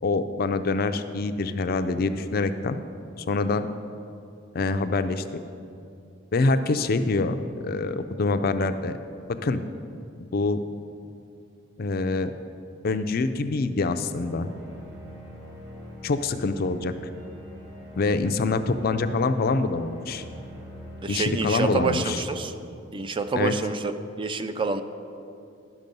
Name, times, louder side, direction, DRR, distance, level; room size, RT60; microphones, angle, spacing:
voice 1, 0.0-2.8 3.3-3.7 4.5-5.2 6.3-8.9 9.3-9.6 10.3-10.6 11.8-12.3 12.8-14.5 16.0-16.9 18.0-20.2 21.1-22.2 23.3-23.5, left 3 dB, 50° left, 9 dB, 0.4 m, -25 dB
sound 1, 14.1-22.2, equal, 65° right, 2.4 m, -43 dB
voice 2, 21.0-22.5 22.9-24.8, right 4 dB, 25° right, 9 dB, 0.4 m, -27 dB
12.0 x 6.1 x 5.3 m, 2.5 s
head